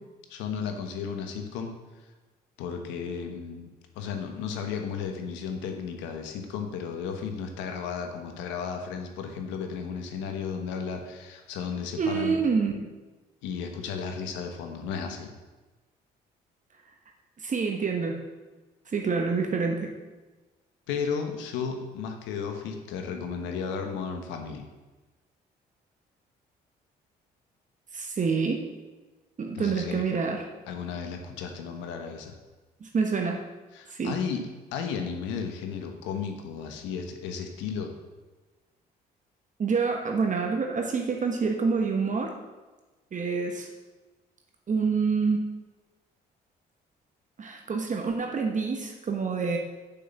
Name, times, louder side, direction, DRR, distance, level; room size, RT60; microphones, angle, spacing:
voice 1, 0.3-1.7 2.6-3.7 3.9-12.4 13.4-15.3 20.9-24.6 29.5-30.0 30.7-32.3 33.7-34.4 34.7-37.9, left 6 dB, 85° left, 5 dB, 1.2 m, -34 dB
voice 2, 12.0-12.8 17.4-18.2 18.9-19.9 27.9-28.7 29.4-30.4 32.8-33.4 33.9-34.2 39.6-42.4 43.1-43.7 44.7-45.5 47.4-49.6, right 5 dB, 45° right, 3 dB, 1.2 m, -27 dB
7.0 x 5.9 x 7.1 m, 1.2 s
supercardioid pair, 65°, 19 cm